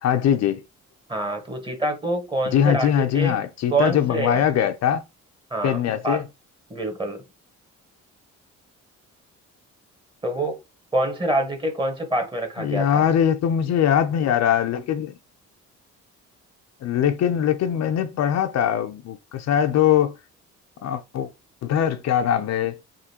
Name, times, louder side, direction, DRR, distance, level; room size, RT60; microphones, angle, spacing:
voice 1, 0.0-0.6 2.5-5.0 5.6-6.2 12.6-15.1 16.8-20.1 20.8-21.3 21.6-22.8, left 9 dB, 60° left, 0.5 m, -21 dB
voice 2, 1.1-3.4 3.7-4.4 5.5-6.2 6.7-7.2 10.2-10.6 10.9-13.1, right 1 dB, 15° right, 1.2 m, -26 dB
3.7 x 2.8 x 2.8 m
cardioid pair, 90°, 30 cm